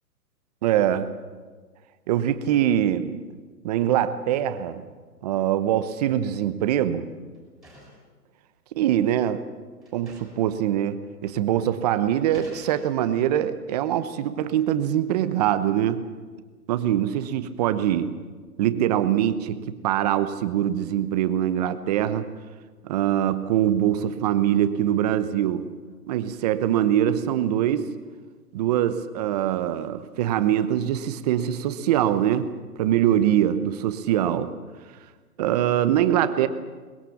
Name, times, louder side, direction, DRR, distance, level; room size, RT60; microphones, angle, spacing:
voice 1, 0.6-1.1 2.1-3.2 3.6-4.8 5.2-7.1 8.8-9.5 9.9-16.0 16.7-18.1 18.6-22.3 22.8-25.7 26.1-27.9 28.5-32.5 32.8-34.5 35.4-36.5, right 11 dB, 25° right, 12 dB, 0.9 m, -23 dB
sound 1, 7.2-8.1 9.0-9.1 9.5-9.6 9.8-10.5 10.8-10.9 11.6-11.8 12.3-13.2, equal, ahead, 6.3 m, -49 dB
23.0 x 21.0 x 7.2 m, 1.4 s
hypercardioid pair, 150°, 48 cm